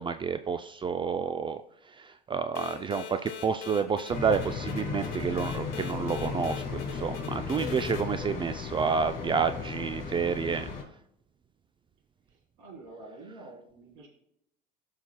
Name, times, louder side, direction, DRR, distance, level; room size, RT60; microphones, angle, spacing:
voice 1, 0.0-1.6 1.9-10.7, right 6 dB, 25° right, 10 dB, 0.4 m, -30 dB
sound 1, 2.5-8.0, left 9 dB, 75° left, 1.3 m, -42 dB
sound 2, 4.1-10.8, left 5 dB, 40° left, 2.6 m, -35 dB
voice 2, 12.3-14.1, right 2 dB, 65° right, -2 dB, 3.3 m, -48 dB
14.5 x 5.7 x 2.2 m, 0.74 s
hypercardioid pair, 85°, 20 cm